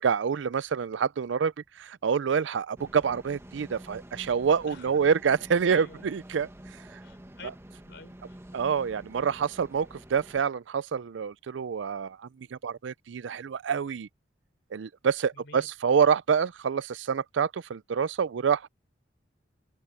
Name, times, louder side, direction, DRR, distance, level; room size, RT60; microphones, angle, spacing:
voice 1, 0.0-1.5 1.8-6.5 8.5-14.1 14.7-18.7, right 6 dB, 75° right, 0.4 m, -27 dB
sound 1, 2.8-10.4, right 1 dB, 15° right, 1.2 m, -48 dB
voice 2, 4.7-5.0 5.7-6.1 7.0-7.5 7.8-8.4 15.3-15.7, left 4 dB, 70° left, 4.2 m, -48 dB
open air
head